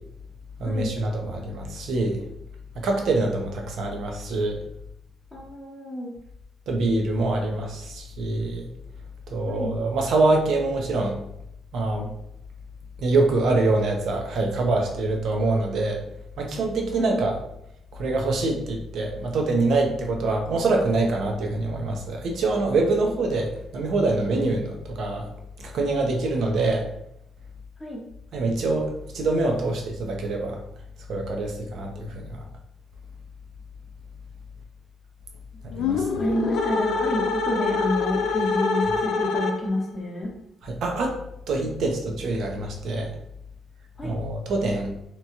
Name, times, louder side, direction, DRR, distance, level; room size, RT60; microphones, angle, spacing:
voice 1, 0.6-2.2 2.7-4.6 6.7-8.7 9.3-11.2 11.7-12.1 13.0-16.0 16.4-17.3 17.9-25.3 25.6-26.9 28.3-30.6 31.1-32.2 35.8-36.2 40.6-41.2 41.5-43.1 44.0-44.9, right 2 dB, 70° right, 2 dB, 0.6 m, -25 dB
voice 2, 5.3-6.1 9.5-9.8 17.0-17.2 27.8-28.0 36.2-40.3 44.0-44.2, left 1 dB, 20° left, -4 dB, 0.7 m, -29 dB
sound 1, 35.7-39.9, left 4 dB, 75° left, 0.3 m, -25 dB
2.8 x 2.3 x 2.8 m, 0.79 s
cardioid pair, 90°, 0 cm